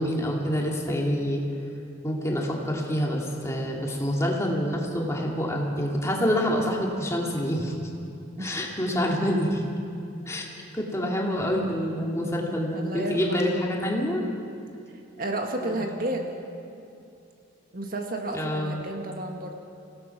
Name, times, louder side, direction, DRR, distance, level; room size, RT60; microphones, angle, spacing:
voice 1, 0.0-1.4 2.0-7.9 8.4-9.6 10.3-10.5 10.7-14.2 15.6-15.8 18.3-18.8, equal, 15° left, -2 dB, 2.6 m, -27 dB
voice 2, 12.2-13.5 15.2-16.3 17.7-19.5, right 1 dB, 45° right, 3 dB, 1.6 m, -32 dB
25.5 x 17.5 x 6.0 m, 2.7 s
head